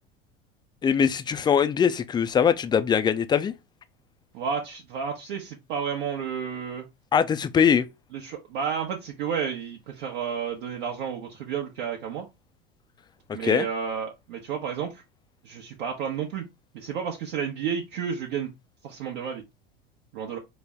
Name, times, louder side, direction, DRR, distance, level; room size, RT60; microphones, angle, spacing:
voice 1, 0.8-3.5 7.1-7.9 13.3-13.7, left 7 dB, 15° left, 0.4 m, -22 dB
voice 2, 4.3-6.9 8.1-12.3 13.3-15.0 15.4-16.5 16.7-18.5 18.8-19.4 20.1-20.4, right 7 dB, 65° right, 1.0 m, -31 dB
5.2 x 2.1 x 3.5 m
hypercardioid pair, 85°, 29 cm